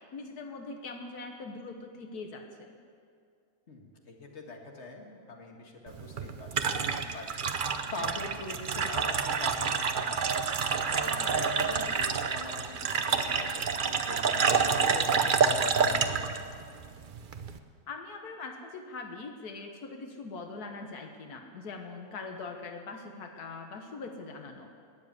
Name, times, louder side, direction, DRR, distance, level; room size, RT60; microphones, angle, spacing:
voice 1, 0.1-2.8 11.2-11.7 17.9-24.7, left 3 dB, 90° left, 4 dB, 1.7 m, -42 dB
voice 2, 3.7-7.3 7.9-10.2 10.9-12.8 13.1-16.3, left 2 dB, 45° left, 1 dB, 2.1 m, -43 dB
sound 1, 5.9-17.6, right 5 dB, 45° right, 0.7 m, -28 dB
19.5 x 7.3 x 9.7 m, 2.2 s
omnidirectional pair, 1.6 m